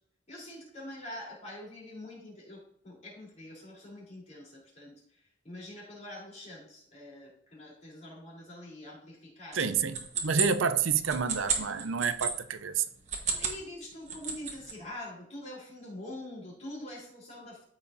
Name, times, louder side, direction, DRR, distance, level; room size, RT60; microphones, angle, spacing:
voice 1, 0.3-4.9 5.4-9.6 10.2-10.4 13.3-17.6, left 1 dB, 35° left, 3.5 m, -45 dB
sound 1, 9.5-12.3 13.0-13.6 13.9-14.7, right 6 dB, 35° right, 1.2 m, -32 dB
voice 2, 9.5-12.8, right 6 dB, 90° right, 0.6 m, -29 dB
13.5 x 5.0 x 2.6 m
head